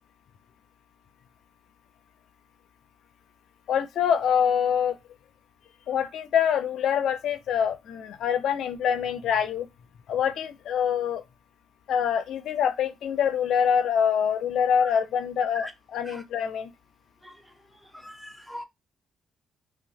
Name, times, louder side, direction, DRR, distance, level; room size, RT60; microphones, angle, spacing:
voice 1, 3.7-5.0 5.9-9.7 10.1-11.2 11.9-16.7, left 8 dB, 75° left, 0.4 m, -25 dB
voice 2, 17.2-17.5 17.8-18.6, left 1 dB, 5° right, 0.6 m, -41 dB
2.8 x 2.1 x 2.8 m
cardioid pair, 90°, 0 cm